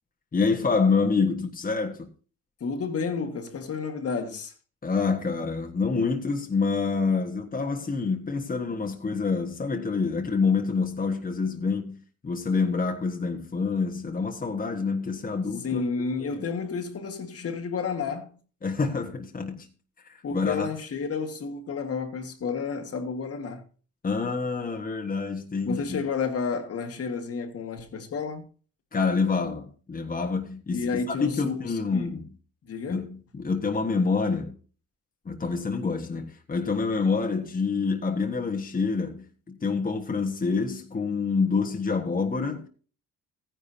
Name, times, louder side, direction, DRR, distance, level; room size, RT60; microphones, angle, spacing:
voice 1, 0.3-2.1 4.8-12.0 12.2-15.8 16.2-16.5 18.6-19.7 20.0-20.7 24.0-26.1 28.9-32.3 32.9-34.5 35.2-42.7, left 4 dB, 30° left, 1.4 m, -27 dB
voice 2, 2.6-4.5 15.6-18.4 20.2-23.6 25.6-28.5 30.7-31.6 31.9-32.1 32.7-33.0, left 5 dB, 50° left, 1.8 m, -31 dB
15.0 x 10.0 x 2.8 m
cardioid pair, 90°, 30 cm